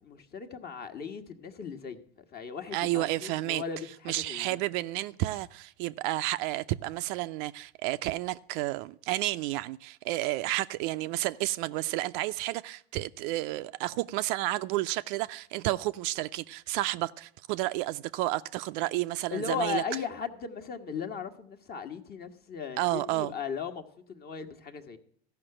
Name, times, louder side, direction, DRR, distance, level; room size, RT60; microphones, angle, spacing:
voice 1, 0.0-2.0 2.3-4.6 19.3-25.0, left 6 dB, 30° left, 1.4 m, -37 dB
voice 2, 2.7-3.6 4.1-19.8 22.8-23.3, right 17 dB, 50° right, 0.5 m, -31 dB
14.0 x 5.9 x 8.8 m
hypercardioid pair, 110°, 33 cm